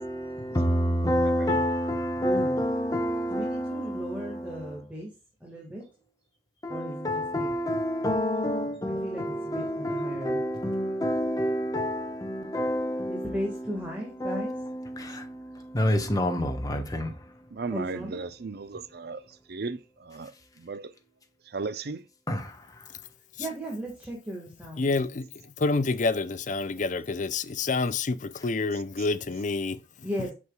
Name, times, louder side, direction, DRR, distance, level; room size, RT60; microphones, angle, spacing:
voice 1, 0.0-4.8 6.6-17.6 22.3-22.9, equal, 20° left, 1.1 m, -29 dB
voice 2, 2.2-2.6 3.3-5.1 5.4-6.1 6.7-7.5 8.9-10.4 13.1-14.5 17.7-18.2 23.0-24.9 30.0-30.3, equal, 10° right, 1.7 m, -36 dB
voice 3, 17.5-19.2 19.5-20.3 20.6-20.9 21.5-22.0, right 3 dB, 65° right, 0.6 m, -35 dB
voice 4, 24.8-30.1, left 3 dB, 45° left, 0.5 m, -28 dB
8.3 x 6.2 x 2.3 m
head